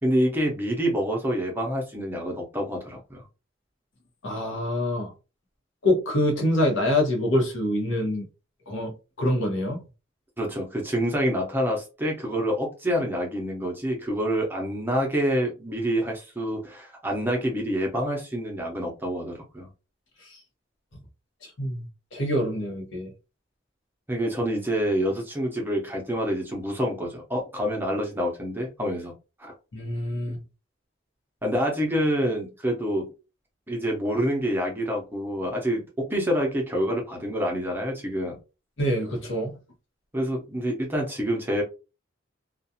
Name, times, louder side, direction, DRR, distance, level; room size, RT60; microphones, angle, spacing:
voice 1, 0.0-3.2 10.4-19.7 24.1-29.1 29.4-29.5 31.4-33.1 33.7-38.4 40.1-41.6, equal, 10° right, 0.6 m, -27 dB
voice 2, 4.2-5.1 5.8-8.2 8.7-9.8 20.2-20.4 21.4-21.8 22.1-23.1 29.7-30.4 38.8-39.6, left 1 dB, 75° left, 0.9 m, -25 dB
2.4 x 2.3 x 2.7 m
head